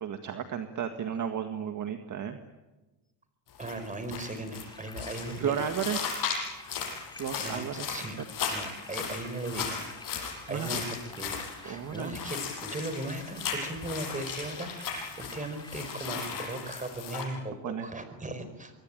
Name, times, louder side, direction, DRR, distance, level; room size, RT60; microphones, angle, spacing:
voice 1, 0.0-2.4 5.4-6.2 7.2-7.9 10.5-10.8 11.7-12.1 17.6-17.9, right 8 dB, 40° right, 6 dB, 1.8 m, -33 dB
sound 1, 3.5-17.2, left 6 dB, 45° left, 7.3 m, -37 dB
voice 2, 3.6-5.6 7.4-8.2 8.5-11.4 11.6-18.7, right 2 dB, 15° right, 10 dB, 4.8 m, -38 dB
sound 2, 4.5-16.6, left 2 dB, 10° left, 4.0 m, -50 dB
25.0 x 22.5 x 9.0 m, 1.1 s
cardioid pair, 125°, 47 cm